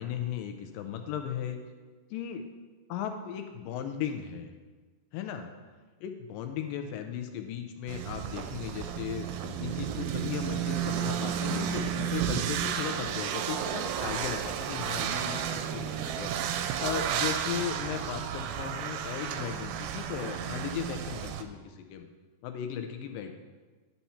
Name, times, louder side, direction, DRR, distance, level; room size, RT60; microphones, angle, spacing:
voice 1, 0.0-1.6 2.1-2.4 2.9-4.5 5.1-5.5 6.0-16.5 16.8-22.1 22.4-23.3, left 9 dB, 80° left, 6 dB, 2.1 m, -36 dB
sound 1, 7.9-21.4, right 9 dB, 85° right, 2.4 m, -32 dB
10.5 x 5.7 x 4.2 m, 1.3 s
omnidirectional pair, 4.3 m